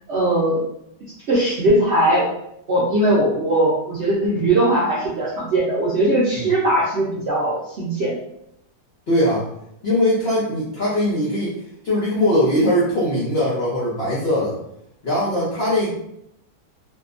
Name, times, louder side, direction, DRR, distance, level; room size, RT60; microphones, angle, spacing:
voice 1, 0.1-0.6 1.3-2.3 2.7-8.2, right 1 dB, 75° right, -7 dB, 0.6 m, -19 dB
voice 2, 9.1-9.5 9.8-11.5 11.8-14.6 15.0-15.9, left 1 dB, 70° left, -6 dB, 0.5 m, -20 dB
2.7 x 2.3 x 2.4 m, 0.78 s
omnidirectional pair, 1.9 m